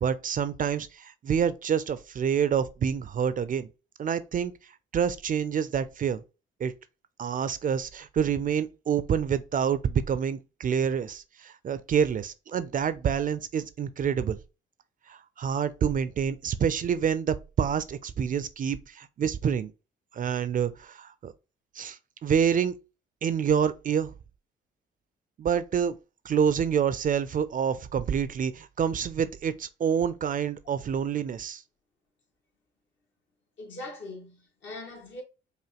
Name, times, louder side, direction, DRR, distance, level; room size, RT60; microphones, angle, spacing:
voice 1, 0.0-3.7 4.0-4.5 4.9-6.2 6.6-6.7 7.2-14.4 15.1-19.7 20.1-21.3 21.8-22.7 23.2-24.1 25.4-26.0 26.2-31.6, right 7 dB, 45° right, 0.4 m, -27 dB
voice 2, 33.6-35.2, left 2 dB, 70° left, 1.9 m, -41 dB
4.9 x 2.6 x 2.9 m
cardioid pair, 90°, 20 cm